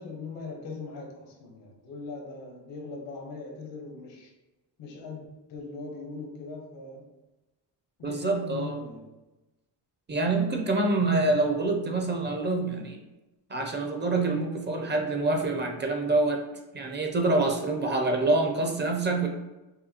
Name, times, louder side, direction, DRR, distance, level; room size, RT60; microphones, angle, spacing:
voice 1, 0.0-4.3 4.8-7.1 8.0-9.1, left 3 dB, 85° left, 2 dB, 1.1 m, -40 dB
voice 2, 8.0-8.8 10.1-13.0 13.5-16.4 16.7-19.3, right 2 dB, 25° right, 3 dB, 0.5 m, -26 dB
5.5 x 2.2 x 2.8 m, 1.0 s
cardioid pair, 115°, 43 cm